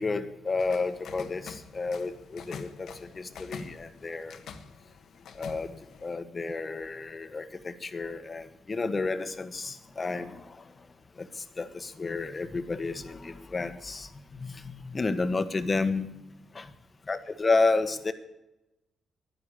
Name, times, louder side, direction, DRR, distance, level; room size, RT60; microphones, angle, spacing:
voice 1, 0.0-4.4 5.3-5.7 6.0-10.6 11.2-16.1 16.5-16.7 17.1-18.1, left 3 dB, 35° left, 10 dB, 1.3 m, -31 dB
sound 1, 0.6-6.2, left 6 dB, 70° left, 1.2 m, -46 dB
11.0 x 11.0 x 8.6 m, 0.95 s
cardioid pair, 75°, 0 cm